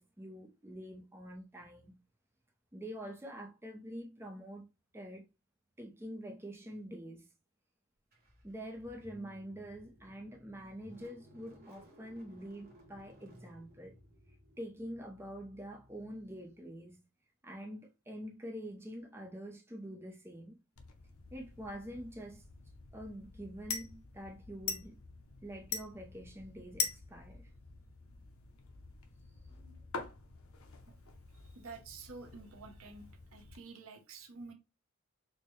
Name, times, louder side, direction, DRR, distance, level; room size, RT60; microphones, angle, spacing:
voice 1, 0.0-2.0 2.7-4.7 4.9-5.3 5.8-7.3 8.4-13.9 14.6-17.0 17.4-20.6 21.3-22.4 22.9-25.0 25.4-27.4 29.5-29.8, equal, 10° right, 0.6 m, -46 dB
Car / Engine starting, 8.1-16.9, equal, 45° right, 1.1 m, -60 dB
sound 1, 20.8-33.6, left 6 dB, 75° left, 0.7 m, -45 dB
voice 2, 31.5-34.5, right 4 dB, 75° right, 0.8 m, -49 dB
4.6 x 2.1 x 3.1 m
head